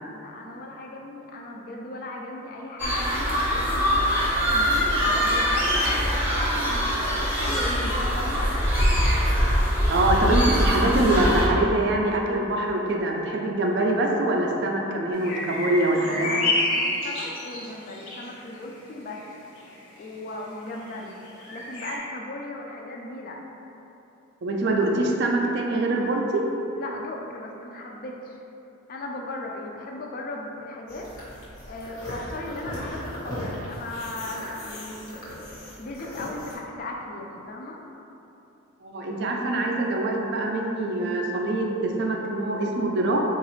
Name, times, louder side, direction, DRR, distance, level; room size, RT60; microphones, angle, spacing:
voice 1, 0.1-6.8 7.1-8.5 16.1-19.2 20.0-21.1 21.5-23.4 26.8-28.4 28.9-31.1 31.7-35.2 35.8-37.8, left 2 dB, 40° left, 0 dB, 0.3 m, -37 dB
sound 1, 2.8-11.5, equal, 10° right, 0.6 m, -23 dB
voice 2, 9.9-16.5 24.4-26.4 38.8-43.2, right 2 dB, 50° right, 0 dB, 0.3 m, -24 dB
sound 2, 15.1-18.3 19.1-19.3 19.7-19.8 20.8-20.9 21.3-22.0, left 2 dB, 60° left, 0.7 m, -28 dB
sound 3, 30.9-36.6, equal, 85° left, 1.0 m, -38 dB
3.9 x 2.3 x 3.0 m, 3.0 s
head